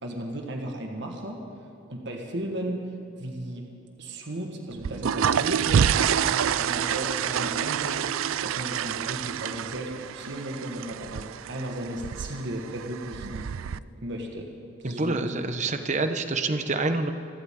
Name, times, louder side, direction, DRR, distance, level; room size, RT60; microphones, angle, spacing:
voice 1, 0.0-1.4 1.9-2.8 3.2-3.7 4.0-13.5 14.0-14.5 14.8-15.3, right 1 dB, 60° right, 2 dB, 1.6 m, -35 dB
sound 1, 4.7-13.8, right 8 dB, 80° right, 0.4 m, -27 dB
voice 2, 14.8-17.1, right 3 dB, 35° right, 8 dB, 1.0 m, -27 dB
27.0 x 13.0 x 3.8 m, 2.9 s
head